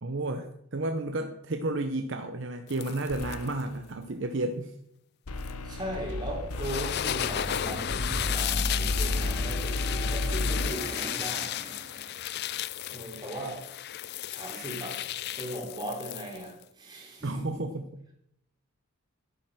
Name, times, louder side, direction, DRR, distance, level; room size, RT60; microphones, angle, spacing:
voice 1, 0.0-4.7 17.2-17.9, right 2 dB, 55° right, 0.7 m, -32 dB
sound 1, 2.7-3.6 5.4-5.5 6.5-16.6, left 12 dB, 45° left, 0.3 m, -34 dB
sound 2, 3.1-3.8 5.3-10.7, left 2 dB, 85° left, 0.9 m, -32 dB
voice 2, 5.6-12.0 12.9-13.7 14.3-17.5, right 1 dB, 20° right, 3.2 m, -38 dB
sound 3, 7.0-12.4, equal, 30° left, 2.4 m, -41 dB
11.0 x 8.7 x 6.2 m
head